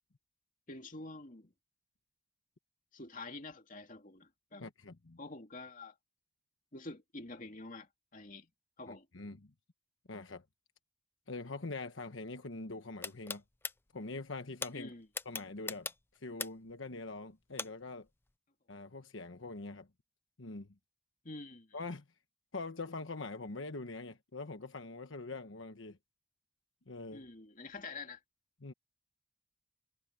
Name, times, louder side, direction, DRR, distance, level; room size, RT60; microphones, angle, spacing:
voice 1, 0.7-1.5 2.9-4.7 5.2-5.9 6.7-8.5 8.8-9.1 14.7-15.1 21.2-21.8 27.1-28.2, left 2 dB, 40° left, 2.6 m, -47 dB
voice 2, 4.6-5.2 8.9-9.5 10.1-10.4 11.3-13.4 13.9-14.9 15.2-18.1 18.7-19.9 20.4-20.7 21.7-22.1 22.5-26.0 26.9-27.3 28.6-28.7, left 3 dB, 80° left, 1.2 m, -43 dB
sound 1, 13.0-13.7 14.6-14.7 15.1-16.7 17.6-17.7, left 4 dB, 10° left, 0.5 m, -38 dB
head